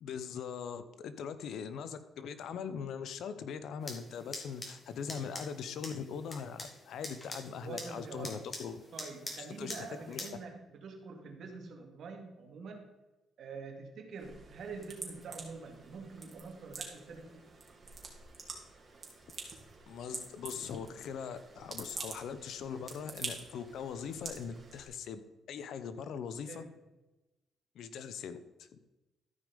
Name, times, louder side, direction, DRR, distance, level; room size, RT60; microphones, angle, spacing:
voice 1, 0.0-8.8 9.6-10.2 19.9-25.2 25.5-26.7 27.7-28.4, left 7 dB, 75° left, 12 dB, 0.8 m, -41 dB
sound 1, 3.8-10.3, left 1 dB, 20° left, 2.3 m, -46 dB
voice 2, 7.6-8.5 8.9-12.8 13.4-17.5 26.5-26.7, right 4 dB, 65° right, 3 dB, 2.1 m, -46 dB
sound 2, 14.2-24.9, right 4 dB, 35° right, 2.6 m, -47 dB
13.5 x 5.4 x 5.2 m, 1.1 s
cardioid pair, 90°, 0 cm